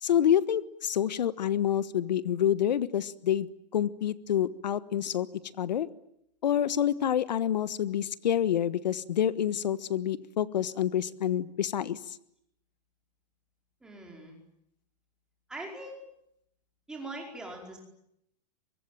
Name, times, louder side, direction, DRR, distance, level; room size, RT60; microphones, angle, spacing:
voice 1, 0.0-3.5 3.7-5.3 5.6-5.9 6.4-12.2, left 10 dB, 85° left, 15 dB, 1.4 m, -27 dB
voice 2, 13.8-14.4 15.5-16.0 16.9-17.8, right 2 dB, 5° right, 0 dB, 4.8 m, -41 dB
24.5 x 24.0 x 9.3 m, 0.76 s
supercardioid pair, 175°, 21 cm